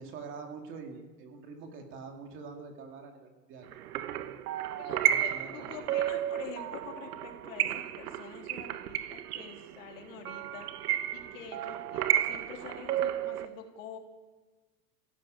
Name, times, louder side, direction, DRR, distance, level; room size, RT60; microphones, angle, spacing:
voice 1, 0.0-3.7 5.0-5.7, right 4 dB, 25° right, 4 dB, 2.3 m, -45 dB
sound 1, 3.7-13.5, right 11 dB, 70° right, 1.5 m, -32 dB
voice 2, 4.7-10.7 11.1-14.0, left 7 dB, 50° left, 3 dB, 3.4 m, -46 dB
28.5 x 16.5 x 8.9 m, 1.3 s
supercardioid pair, 175°, 48 cm